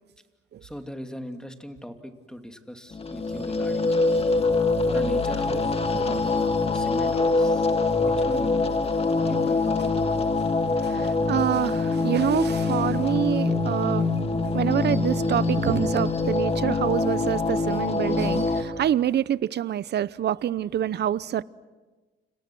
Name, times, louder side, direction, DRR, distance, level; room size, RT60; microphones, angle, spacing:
voice 1, 0.6-3.9 4.9-5.7 6.0-7.7 8.0-8.5 9.2-9.8, equal, 5° left, 2.8 m, -38 dB
sound 1, 2.9-18.6, left 3 dB, 30° left, 2.1 m, -24 dB
voice 2, 10.8-14.1 14.5-21.4, right 10 dB, 60° right, 0.8 m, -26 dB
30.0 x 28.0 x 6.2 m
cardioid pair, 90°, 20 cm